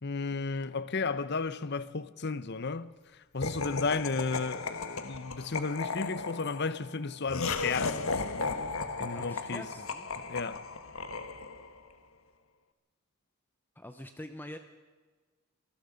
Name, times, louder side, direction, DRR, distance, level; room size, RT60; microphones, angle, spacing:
voice 1, 0.0-8.2 9.0-9.7 10.2-10.7, left 4 dB, 50° left, 0.8 m, -34 dB
Laughter, 3.4-11.8, left 4 dB, 70° left, 1.4 m, -35 dB
voice 2, 9.1-10.1 13.8-14.6, left 1 dB, 10° left, 0.8 m, -45 dB
26.0 x 19.0 x 5.2 m
head